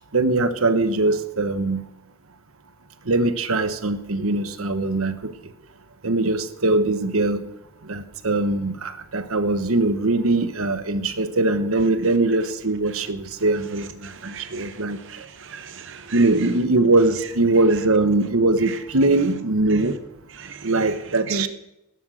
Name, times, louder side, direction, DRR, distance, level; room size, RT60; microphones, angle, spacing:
voice 1, 0.1-1.8 3.1-5.3 6.0-7.4 7.8-15.0 16.1-20.0 20.6-21.5, right 2 dB, 85° right, 10 dB, 1.2 m, -21 dB
voice 2, 14.0-16.5 18.6-18.8 19.7-19.8 20.3-21.0 21.3-21.5, right 4 dB, 60° right, 8 dB, 0.9 m, -36 dB
19.5 x 11.5 x 6.4 m, 0.90 s
head